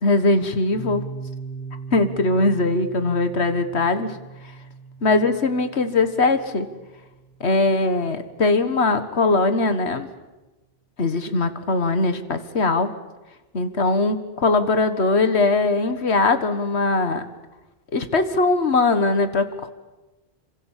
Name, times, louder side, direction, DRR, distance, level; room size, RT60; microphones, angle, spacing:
voice 1, 0.0-1.0 1.9-4.2 5.0-6.7 7.4-10.1 11.0-12.9 13.5-17.2 17.9-19.7, left 3 dB, 85° left, 9 dB, 1.9 m, -21 dB
Piano, 0.7-8.2, right 4 dB, 15° left, 3.9 m, -39 dB
28.5 x 26.5 x 7.5 m, 1.1 s
omnidirectional pair, 1.1 m